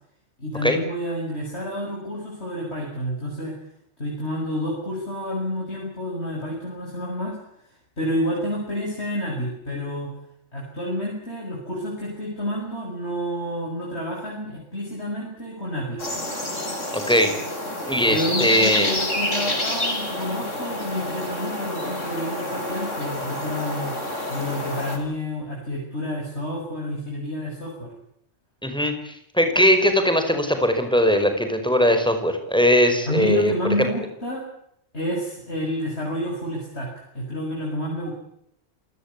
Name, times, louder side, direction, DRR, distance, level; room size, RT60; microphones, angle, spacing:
voice 1, 0.4-3.5 4.0-7.4 8.0-10.1 10.5-16.1 18.1-24.0 24.3-27.9 33.1-34.4 34.9-36.9 37.1-38.1, equal, 60° left, -2 dB, 7.5 m, -29 dB
sound 1, 16.0-25.0, left 1 dB, 85° left, 6.2 m, -28 dB
voice 2, 16.9-17.3 17.9-19.0 28.6-33.9, equal, 5° left, 7 dB, 5.2 m, -20 dB
28.0 x 18.0 x 8.4 m, 0.73 s
omnidirectional pair, 1.2 m